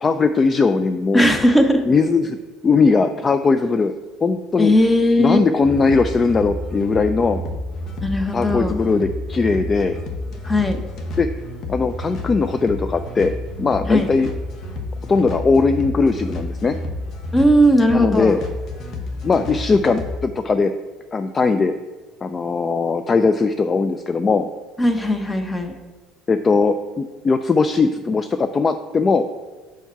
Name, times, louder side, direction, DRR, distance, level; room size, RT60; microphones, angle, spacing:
voice 1, 0.0-1.3 1.9-2.4 2.6-3.9 4.2-4.7 5.2-7.4 8.3-9.9 11.2-11.3 11.7-13.3 13.6-14.3 15.1-16.8 17.9-18.4 19.2-20.7 21.1-21.7 22.2-24.5 26.3-29.3, left 4 dB, 35° left, 9 dB, 0.3 m, -19 dB
voice 2, 1.1-1.8 4.6-5.4 8.0-8.8 10.4-10.8 13.9-14.1 17.3-18.3 24.8-25.7, equal, 15° left, 6 dB, 0.9 m, -17 dB
sound 1, 5.6-20.2, left 1 dB, 55° left, 1.0 m, -30 dB
4.6 x 4.4 x 5.7 m, 1.3 s
hypercardioid pair, 70°, 0 cm